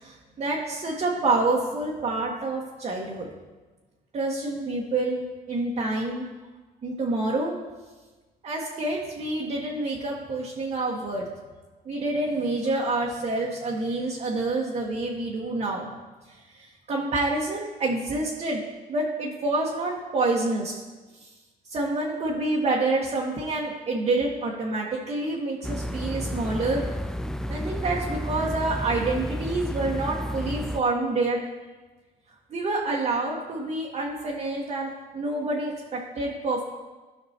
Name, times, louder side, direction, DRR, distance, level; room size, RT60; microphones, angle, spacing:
voice 1, 0.0-3.3 4.1-6.3 6.8-7.5 8.4-11.3 11.8-15.9 16.3-18.6 18.9-20.8 21.1-21.3 21.7-26.8 27.5-31.4 32.5-36.6, right 2 dB, 40° right, -3 dB, 1.3 m, -27 dB
sound 1, 25.6-30.8, equal, 5° left, 0.3 m, -31 dB
15.5 x 5.8 x 2.9 m, 1.3 s
cardioid pair, 110°, 17 cm